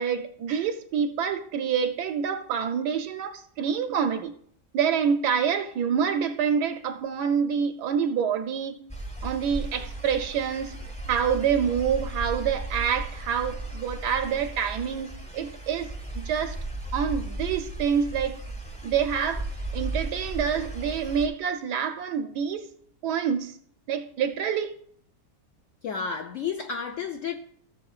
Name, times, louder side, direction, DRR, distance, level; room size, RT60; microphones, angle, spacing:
voice 1, 0.0-4.3 4.7-8.8 9.2-10.8 11.1-15.9 16.1-16.6 16.9-18.4 18.8-19.5 19.7-22.7 23.0-23.6 23.9-24.7, right 7 dB, 75° right, 1.1 m, -27 dB
sound 1, 8.9-21.3, right 2 dB, 5° left, 0.7 m, -35 dB
voice 2, 25.8-27.4, left 6 dB, 70° left, 0.7 m, -31 dB
15.0 x 7.2 x 2.4 m
omnidirectional pair, 1.9 m